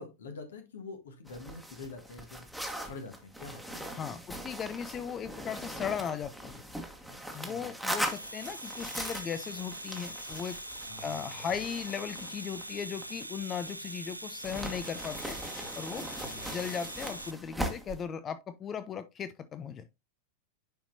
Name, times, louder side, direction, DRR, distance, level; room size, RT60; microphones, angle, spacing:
voice 1, 0.0-2.5 2.8-4.0 7.3-7.8 10.9-11.5 16.2-16.7, left 3 dB, 65° left, 1.6 m, -46 dB
sound 1, 1.3-13.9 14.4-18.0, equal, ahead, 1.3 m, -40 dB
voice 2, 3.9-6.6 7.3-10.6 11.0-15.4 15.8-16.0 16.5-19.8, left 7 dB, 25° left, 0.5 m, -37 dB
Domestic sounds home sounds, 7.8-17.3, right 1 dB, 85° right, 0.5 m, -43 dB
10.0 x 4.3 x 2.7 m
figure-of-eight pair, 90°, 0 cm